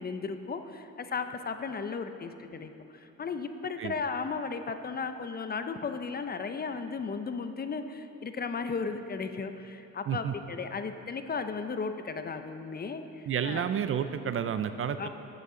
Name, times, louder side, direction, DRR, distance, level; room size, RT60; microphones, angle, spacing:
voice 1, 0.0-13.7 15.0-15.1, left 5 dB, 30° left, 8 dB, 0.6 m, -35 dB
voice 2, 13.3-15.1, right 8 dB, 45° right, 11 dB, 0.5 m, -30 dB
12.0 x 8.3 x 3.8 m, 2.9 s
cardioid pair, 90°, 30 cm